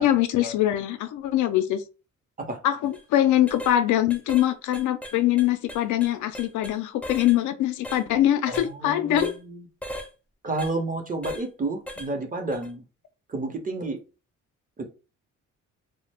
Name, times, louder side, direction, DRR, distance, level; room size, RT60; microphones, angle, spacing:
voice 1, 0.0-1.8 2.6-9.3, left 12 dB, 75° left, 0.5 m, -23 dB
sound 1, 2.8-3.0 3.5-3.8 4.1-4.5 4.7-6.8 7.0-7.4 7.8-8.0 8.5-8.7 9.2-9.4 9.8-10.1 10.6-10.7 11.2-11.4 11.9-12.1 12.5-12.7, equal, 5° left, 0.4 m, -37 dB
voice 2, 8.5-9.6 10.4-12.8 13.3-14.0 14.8-14.9, right 2 dB, 25° right, 0.7 m, -31 dB
2.3 x 2.0 x 3.4 m
cardioid pair, 90°, 30 cm